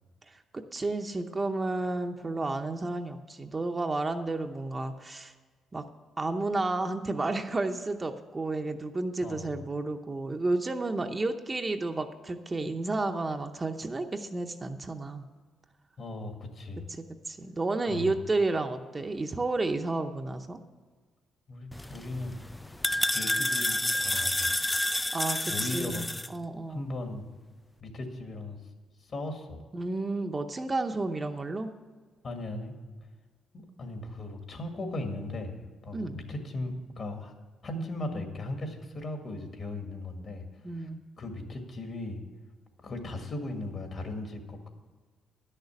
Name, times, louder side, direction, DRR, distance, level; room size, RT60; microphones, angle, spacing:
voice 1, 0.5-5.3 5.7-5.8 6.2-15.2 16.9-20.6 25.1-26.1 26.3-26.8 29.7-31.7 35.9-36.2 40.6-41.0, right 2 dB, 25° right, 5 dB, 0.7 m, -31 dB
voice 2, 9.2-9.5 16.0-16.8 17.9-18.1 21.5-22.3 23.1-24.5 25.5-26.1 26.7-27.3 27.8-28.6 29.0-29.6 32.2-32.7 33.5-37.3 37.6-40.9 41.2-42.2 42.8-44.7, left 2 dB, 50° left, 4 dB, 1.9 m, -37 dB
sound 1, 21.7-26.3, left 1 dB, 10° left, 0.3 m, -29 dB
11.0 x 6.6 x 7.1 m, 1.4 s
cardioid pair, 90°, 0 cm